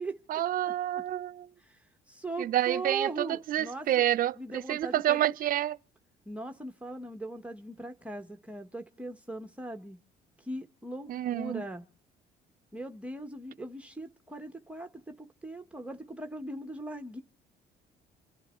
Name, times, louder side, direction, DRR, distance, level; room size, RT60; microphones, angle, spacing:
voice 1, 0.3-1.5 2.4-5.8 11.1-11.6, right 12 dB, 55° right, 0.6 m, -28 dB
voice 2, 1.6-4.0 4.4-5.4 6.3-10.0 10.4-11.8 12.7-17.2, right 2 dB, 5° right, 0.9 m, -40 dB
27.0 x 10.5 x 4.3 m
cardioid pair, 110°, 17 cm